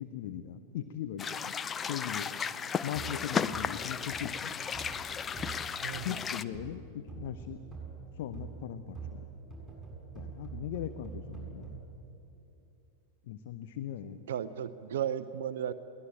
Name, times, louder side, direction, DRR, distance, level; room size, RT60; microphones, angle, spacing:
voice 1, 0.0-1.5 1.8-2.3 2.8-4.5 6.0-7.6 8.1-9.2 10.1-11.8 13.3-14.2, left 10 dB, 55° left, 11 dB, 0.8 m, -39 dB
sound 1, 1.2-6.4, left 6 dB, 20° left, 0.6 m, -34 dB
sound 2, 2.9-11.7, right 5 dB, 5° right, 7.4 m, -45 dB
voice 2, 5.8-6.2 14.3-15.7, right 9 dB, 60° right, 13 dB, 0.6 m, -34 dB
22.5 x 18.0 x 8.9 m, 2.7 s
figure-of-eight pair, 90°, 0 cm